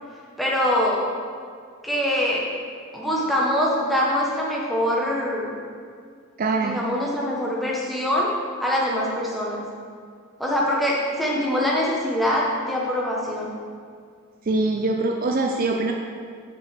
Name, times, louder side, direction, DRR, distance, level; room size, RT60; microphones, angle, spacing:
voice 1, 0.4-1.0 1.8-2.4 2.9-5.5 6.6-8.3 8.6-9.6 10.4-13.5, left 1 dB, ahead, -5 dB, 1.2 m, -23 dB
voice 2, 6.4-6.8 14.5-15.9, right 3 dB, 40° right, 2 dB, 0.4 m, -23 dB
6.3 x 5.0 x 6.7 m, 2.1 s
head